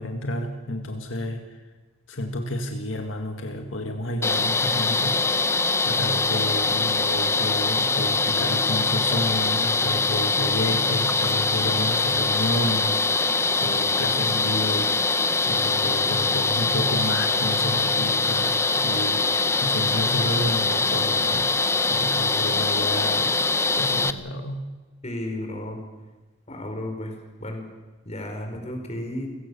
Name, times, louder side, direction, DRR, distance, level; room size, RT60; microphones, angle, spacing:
voice 1, 0.0-1.6 2.1-5.2 5.8-14.9 15.5-21.5 21.8-23.4 23.8-24.7, left 1 dB, 80° left, 4 dB, 2.0 m, -30 dB
sound 1, 4.2-24.1, left 3 dB, 15° left, 0.7 m, -23 dB
voice 2, 25.0-25.8 26.5-27.7 28.0-29.3, left 1 dB, 35° left, 4 dB, 4.8 m, -33 dB
29.5 x 17.0 x 7.0 m, 1.2 s
head